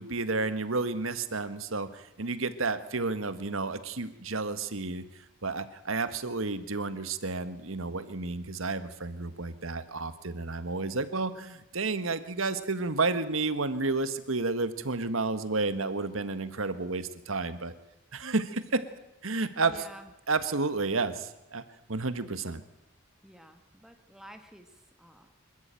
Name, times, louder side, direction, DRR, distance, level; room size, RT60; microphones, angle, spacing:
voice 1, 0.0-5.0 5.4-17.7 18.1-18.8 19.2-19.8 20.3-21.6 21.9-22.6, right 3 dB, 80° right, 11 dB, 1.7 m, -31 dB
voice 2, 19.6-20.1 23.2-25.3, right 1 dB, ahead, 6 dB, 1.4 m, -51 dB
26.0 x 14.0 x 9.1 m, 0.91 s
head